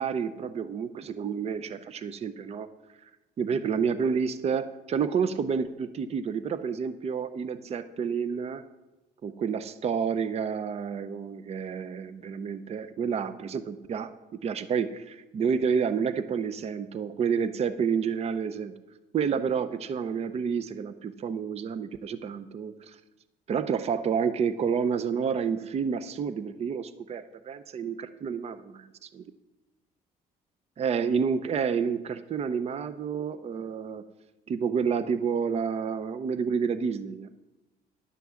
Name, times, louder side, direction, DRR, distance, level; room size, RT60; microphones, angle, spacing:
voice 1, 0.0-2.7 3.4-8.6 9.2-14.1 14.4-18.7 19.1-23.0 23.5-29.2 30.8-34.0 34.5-37.3, right 6 dB, 40° right, 13 dB, 0.6 m, -29 dB
11.0 x 5.9 x 7.1 m, 1.0 s
cardioid pair, 110°, 17 cm